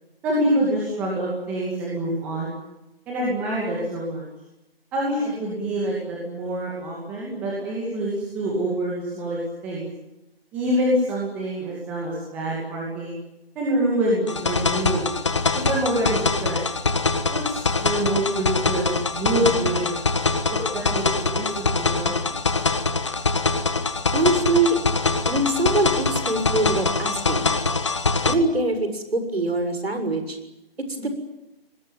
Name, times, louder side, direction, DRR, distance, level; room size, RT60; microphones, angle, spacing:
voice 1, 0.2-2.5 3.1-4.3 4.9-9.8 10.5-13.2 13.6-15.0 15.5-16.6 17.3-20.0 20.5-22.1, right 1 dB, 5° right, -5 dB, 2.4 m, -26 dB
sound 1, 14.3-28.3, left 3 dB, 30° left, 1.5 m, -24 dB
voice 2, 24.1-24.8 25.3-27.5 28.2-30.4 30.8-31.1, right 2 dB, 80° right, 7 dB, 7.0 m, -23 dB
28.5 x 20.5 x 9.1 m, 0.93 s
figure-of-eight pair, 175°, 30 cm